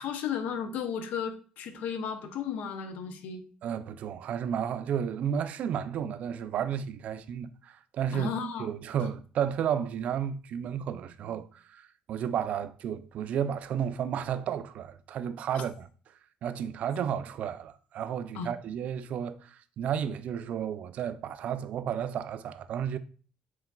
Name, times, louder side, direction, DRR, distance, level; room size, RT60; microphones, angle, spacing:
voice 1, 0.0-3.4 8.1-8.7 18.3-18.5, left 7 dB, 75° left, 0.6 m, -34 dB
voice 2, 3.6-8.3 8.6-15.9 16.4-23.0, right 8 dB, 60° right, 0.3 m, -32 dB
4.6 x 3.9 x 2.3 m
cardioid pair, 115°, 3 cm